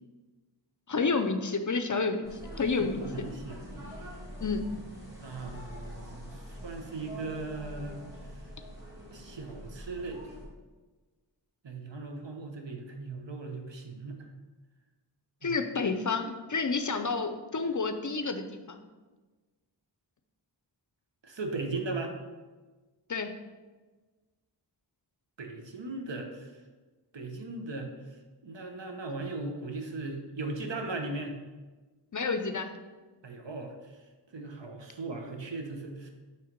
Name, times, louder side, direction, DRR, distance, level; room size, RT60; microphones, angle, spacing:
voice 1, 0.9-3.3 4.4-4.7 15.4-18.8 23.1-23.3 32.1-32.7, left 4 dB, 45° left, 8 dB, 0.5 m, -30 dB
sound 1, 2.2-10.4, equal, 10° right, 1.8 m, -44 dB
voice 2, 2.8-3.6 5.2-8.1 9.1-10.3 11.6-14.2 15.4-15.6 21.2-22.1 25.4-26.6 27.1-27.9 28.4-31.4 33.2-34.0 34.3-36.1, right 3 dB, 75° right, 3 dB, 0.8 m, -38 dB
5.8 x 3.2 x 5.1 m, 1.3 s
wide cardioid pair, 45°, 44 cm